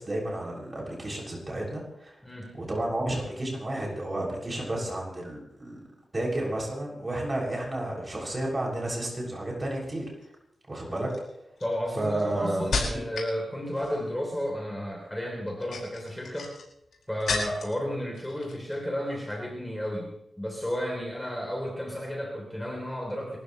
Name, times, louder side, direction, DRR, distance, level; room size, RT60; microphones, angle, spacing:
voice 1, 0.0-2.2 2.5-5.8 6.1-10.1 10.7-11.1 12.0-12.6, right 1 dB, 25° right, -2 dB, 6.8 m, -31 dB
voice 2, 2.2-2.6 11.6-16.5 17.1-23.4, equal, 5° left, -1 dB, 3.4 m, -33 dB
sound 1, 9.9-10.3 11.0-13.4 13.7-14.2 15.4-17.8 18.1-18.8 19.1-19.3, left 4 dB, 85° left, 5.1 m, -34 dB
29.0 x 14.5 x 3.2 m, 0.81 s
wide cardioid pair, 115°, 0 cm